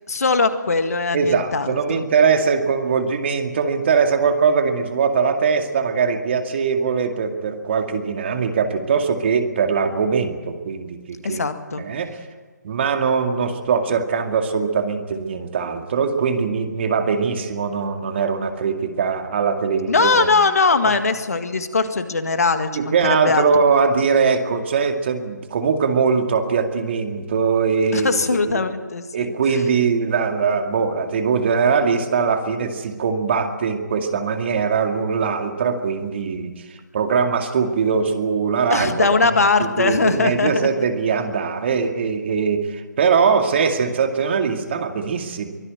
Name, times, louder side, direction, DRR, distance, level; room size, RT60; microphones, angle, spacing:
voice 1, 0.1-2.0 11.2-11.8 19.9-23.5 27.9-29.6 38.7-40.8, left 4 dB, 55° left, 9 dB, 2.0 m, -21 dB
voice 2, 1.1-11.4 11.8-12.2 12.6-20.3 22.7-28.6 29.1-36.7 36.9-39.1 39.6-45.5, right 5 dB, 40° right, 6 dB, 2.2 m, -21 dB
24.0 x 15.5 x 8.9 m, 1.4 s
figure-of-eight pair, 140°, 10 cm